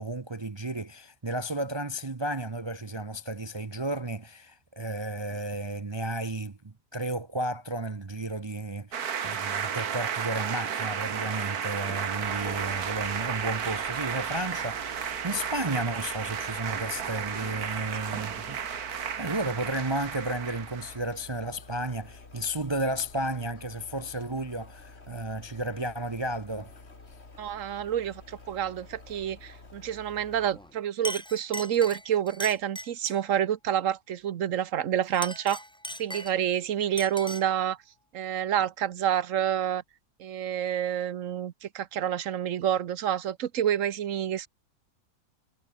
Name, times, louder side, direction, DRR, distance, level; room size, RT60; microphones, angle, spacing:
voice 1, 0.0-18.6 19.2-26.7, right 1 dB, 25° right, 0.6 m, -33 dB
sound 1, 8.9-21.0, right 8 dB, 80° right, 1.9 m, -33 dB
sound 2, 11.9-30.8, left 3 dB, 45° left, 3.3 m, -50 dB
voice 2, 27.4-35.6 36.0-37.8 38.1-39.8 40.2-44.5, right 10 dB, 60° right, 1.2 m, -28 dB
Chink clink, 30.5-30.7 31.0-33.3 35.0-36.6 37.0-37.6, left 1 dB, 5° left, 1.1 m, -39 dB
omnidirectional pair, 1.6 m